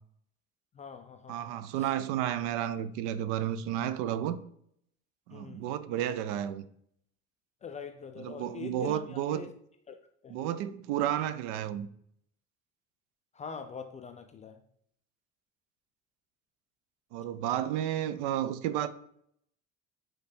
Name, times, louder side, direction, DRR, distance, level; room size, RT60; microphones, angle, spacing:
voice 1, 0.7-1.5 5.3-5.6 7.6-9.5 9.9-10.0 10.2-10.4 13.3-14.6, left 6 dB, 20° left, 0.3 m, -43 dB
voice 2, 1.3-4.4 5.3-6.6 8.2-9.4 10.3-11.9 17.1-18.9, right 11 dB, 55° right, 0.5 m, -32 dB
5.2 x 4.5 x 4.2 m
figure-of-eight pair, 55°, 40 cm